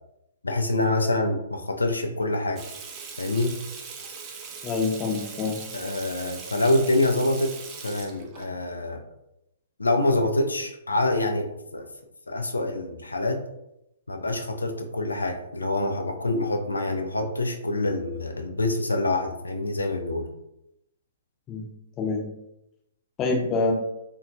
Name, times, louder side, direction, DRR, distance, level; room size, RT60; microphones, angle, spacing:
voice 1, 0.4-2.6 3.2-3.6 5.7-7.5 7.8-9.0 9.8-11.9 12.3-13.4 14.1-20.3, left 2 dB, 80° left, 4 dB, 0.3 m, -26 dB
Water tap faucet / Sink (filling or washing), 2.6-8.5, right 5 dB, 25° right, 0.4 m, -40 dB
voice 2, 4.6-5.6 21.5-21.7 22.0-22.2 23.2-23.7, left 4 dB, 25° left, -1 dB, 0.6 m, -26 dB
2.8 x 2.2 x 2.5 m, 0.84 s
figure-of-eight pair, 120°, 0 cm